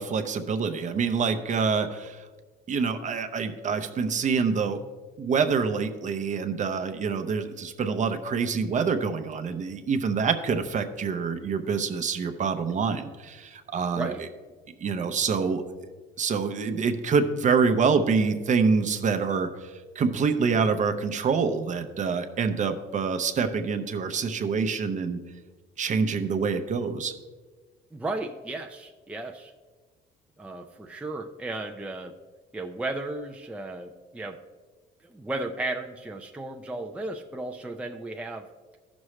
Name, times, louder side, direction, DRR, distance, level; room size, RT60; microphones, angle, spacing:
voice 1, 0.0-2.2 2.7-4.8 5.2-14.1 14.8-15.6 16.2-25.2 25.8-27.1, right 5 dB, 40° right, 8 dB, 0.7 m, -26 dB
voice 2, 27.9-29.5 30.4-32.1 32.5-34.4 35.0-38.5, right 2 dB, 5° right, 4 dB, 0.5 m, -34 dB
14.0 x 6.2 x 3.2 m, 1.4 s
cardioid pair, 125°, 19 cm